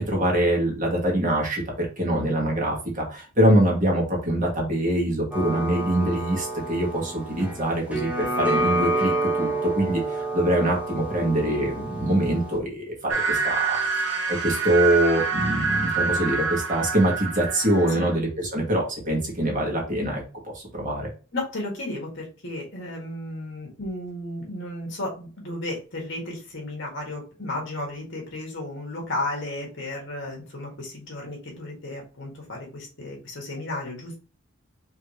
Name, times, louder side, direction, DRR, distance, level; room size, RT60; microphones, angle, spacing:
voice 1, 0.0-21.1, right 1 dB, 40° right, -1 dB, 1.7 m, -24 dB
sound 1, 5.3-12.6, right 2 dB, 5° right, 0.9 m, -28 dB
sound 2, 13.1-18.2, right 4 dB, 60° right, 0.7 m, -26 dB
voice 2, 21.3-34.1, left 2 dB, 60° left, -1 dB, 2.1 m, -34 dB
4.9 x 3.3 x 3.1 m, 0.35 s
head